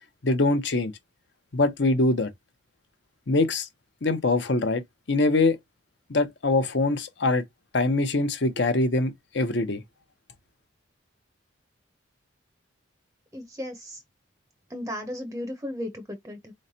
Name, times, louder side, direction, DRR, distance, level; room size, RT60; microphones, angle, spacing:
voice 1, 0.2-0.9 1.5-2.3 3.3-3.7 4.0-4.8 5.1-5.6 6.1-7.4 7.7-9.8, left 2 dB, 60° left, 0.8 m, -23 dB
voice 2, 13.3-14.0 14.7-16.5, left 1 dB, 15° right, 0.6 m, -35 dB
4.1 x 3.1 x 2.7 m
head